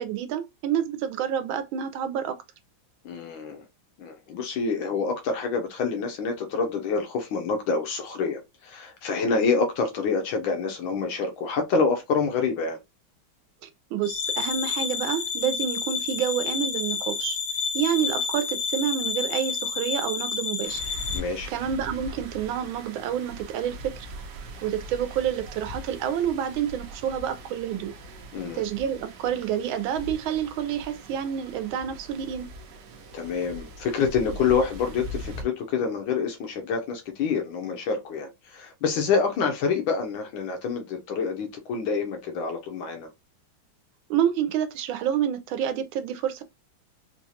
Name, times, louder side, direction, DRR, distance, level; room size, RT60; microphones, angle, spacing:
voice 1, 0.0-2.4 13.6-17.4 17.7-20.8 21.5-24.1 24.6-27.9 28.5-32.5 44.1-46.4, right 9 dB, 85° right, 1.4 m, -28 dB
voice 2, 3.0-3.6 4.0-12.8 21.1-21.5 28.3-28.6 33.1-43.1, left 5 dB, 80° left, 1.5 m, -27 dB
sound 1, 14.0-21.2, left 6 dB, 60° left, 1.0 m, -30 dB
sound 2, 20.6-35.4, right 1 dB, 65° right, 1.2 m, -41 dB
4.4 x 2.3 x 2.8 m
omnidirectional pair, 2.2 m